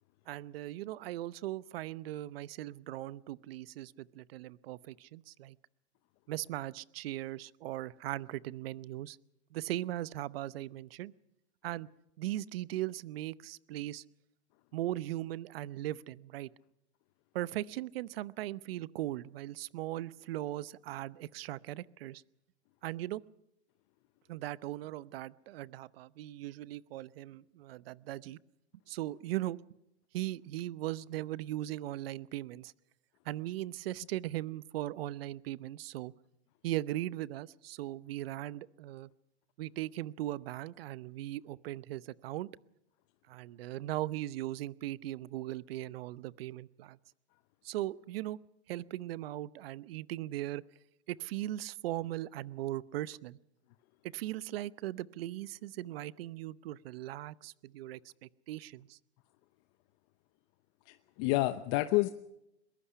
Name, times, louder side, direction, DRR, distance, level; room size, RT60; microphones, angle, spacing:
voice 1, 0.3-5.6 6.3-9.2 9.5-11.1 11.6-11.9 12.2-14.0 14.7-16.5 17.3-22.2 22.8-23.2 24.3-28.4 28.9-29.6 30.1-32.7 33.2-36.1 36.6-39.1 39.6-42.5 43.3-47.0 47.6-48.4 48.7-50.6 51.1-53.4 54.1-59.0, right 15 dB, 60° right, 19 dB, 0.8 m, -39 dB
voice 2, 60.9-62.1, left 18 dB, 35° left, 11 dB, 0.9 m, -29 dB
22.0 x 21.0 x 5.7 m, 0.84 s
hypercardioid pair, 130°, 34 cm